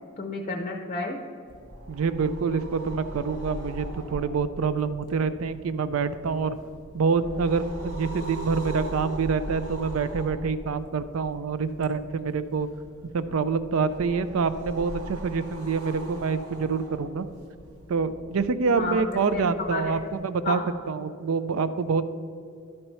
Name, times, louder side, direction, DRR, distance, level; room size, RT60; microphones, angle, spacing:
voice 1, 0.2-1.2 18.7-20.0 20.4-20.7, left 3 dB, 30° left, 2 dB, 0.6 m, -31 dB
sound 1, 1.5-20.2, equal, 85° right, 1.3 m, -41 dB
voice 2, 1.9-6.6 6.9-12.7 13.1-17.3 17.9-20.6 20.9-22.0, right 5 dB, 70° right, 13 dB, 0.4 m, -26 dB
12.0 x 4.4 x 5.5 m, 2.5 s
head